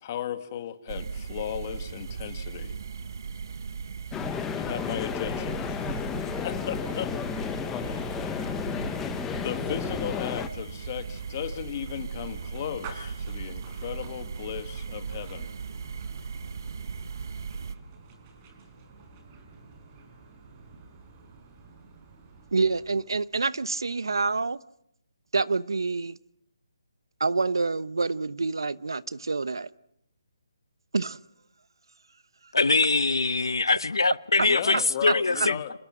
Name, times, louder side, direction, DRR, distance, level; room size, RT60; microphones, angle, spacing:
voice 1, 0.0-2.7 4.6-6.0 6.4-7.1 7.8-8.4 9.4-15.5 34.5-35.7, left 10 dB, 30° left, 2.1 m, -36 dB
sound 1, 0.9-17.8, right 5 dB, 55° right, 1.4 m, -37 dB
sound 2, 4.1-10.5, left 8 dB, 10° left, 1.2 m, -33 dB
sound 3, 4.7-23.3, right 4 dB, 25° right, 5.0 m, -51 dB
voice 2, 22.5-24.6 25.3-26.2 27.2-29.7 30.9-31.2 34.4-34.5 34.7-35.5, right 4 dB, 75° right, 0.9 m, -27 dB
voice 3, 32.5-35.6, left 3 dB, 85° left, 0.9 m, -23 dB
28.5 x 27.0 x 6.1 m
figure-of-eight pair, 155°, 2 cm